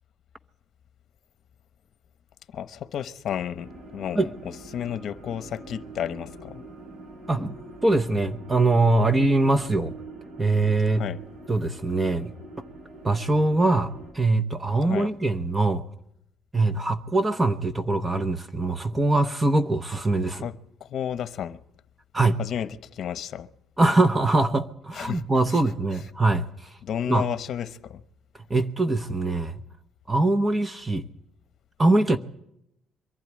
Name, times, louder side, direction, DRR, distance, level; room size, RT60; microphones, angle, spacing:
voice 1, 2.5-4.3 4.7-6.6 10.9-11.2 14.9-15.1 20.3-20.5 20.8-21.6 22.4-23.5 24.9-25.2 25.5-25.6 26.8-28.0, left 9 dB, 60° left, 0.9 m, -32 dB
sound 1, 3.5-14.1, right 2 dB, 75° right, 5.8 m, -44 dB
voice 2, 7.8-9.9 10.4-11.0 11.5-12.3 13.0-15.8 16.5-20.5 22.1-22.4 23.8-26.7 27.1-27.3 28.5-29.6 30.1-31.0 31.8-32.2, right 2 dB, 20° right, 0.9 m, -23 dB
23.0 x 12.0 x 9.6 m
cardioid pair, 105°, 0 cm